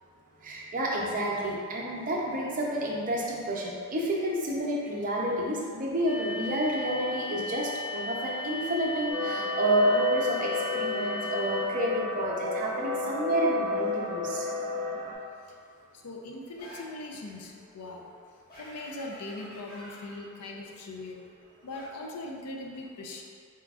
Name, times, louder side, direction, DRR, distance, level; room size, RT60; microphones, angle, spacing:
voice 1, 0.4-14.5, right 1 dB, 40° right, -3 dB, 0.6 m, -29 dB
sound 1, 6.1-11.7, left 2 dB, 25° left, 0.5 m, -36 dB
sound 2, 9.1-15.1, left 3 dB, 10° left, 1.5 m, -32 dB
voice 2, 15.9-18.1 18.6-21.2 21.6-23.2, left 2 dB, 90° left, 1 dB, 0.5 m, -40 dB
sound 3, 16.6-16.9 18.5-20.2 21.7-21.9, equal, 45° left, 1.2 m, -47 dB
4.3 x 3.7 x 2.4 m, 2.2 s
head